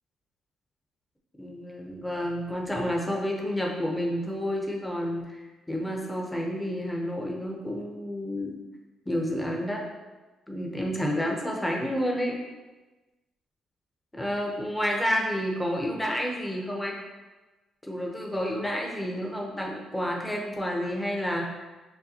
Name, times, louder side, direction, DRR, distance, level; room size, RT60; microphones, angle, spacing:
voice 1, 1.4-5.4 5.7-8.6 9.1-9.8 10.5-12.4 14.1-17.0 17.8-21.6, equal, 10° left, -1 dB, 0.8 m, -30 dB
6.5 x 2.2 x 2.8 m, 1.2 s
cardioid pair, 90°, 0 cm